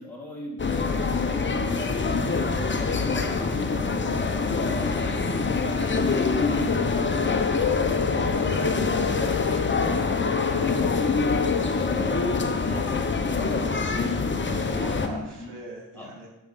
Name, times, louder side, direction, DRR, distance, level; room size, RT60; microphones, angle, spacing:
voice 1, 0.0-1.8 2.2-4.4 5.0-5.3 5.8-10.1 10.6-11.3 11.7-13.8 14.8-15.5 15.9-16.1, left 1 dB, 5° left, -5 dB, 3.6 m, -40 dB
sound 1, 0.6-15.1, left 4 dB, 30° left, 1.0 m, -25 dB
sound 2, 6.7-11.6, left 8 dB, 60° left, 0.6 m, -30 dB
voice 2, 14.4-16.3, right 2 dB, 90° right, -1 dB, 2.7 m, -40 dB
8.4 x 5.9 x 5.7 m, 0.96 s
cardioid pair, 70°, 39 cm